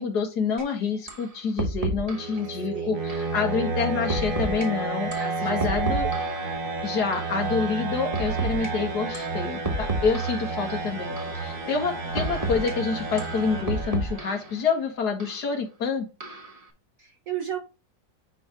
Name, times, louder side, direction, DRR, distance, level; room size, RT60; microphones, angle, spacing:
voice 1, 0.0-6.1 6.8-16.1, left 5 dB, 60° left, 2.1 m, -27 dB
sound 1, 0.6-0.7 1.1-1.3 1.6-2.3 3.1-3.3 4.1-4.7 5.1-6.5 7.1-7.3 8.1-8.7 9.1-9.3 9.6-10.5 11.2-11.4 12.2-12.7 13.2-14.5 15.2-15.4 16.2-16.6, right 2 dB, 20° right, 1.3 m, -31 dB
sound 2, 1.7-14.6, right 3 dB, 90° right, 2.4 m, -31 dB
voice 2, 2.3-3.6 5.2-6.3 12.1-12.7 13.0-13.1 17.0-17.6, right 9 dB, 55° right, 1.2 m, -37 dB
9.8 x 3.4 x 3.2 m
omnidirectional pair, 1.9 m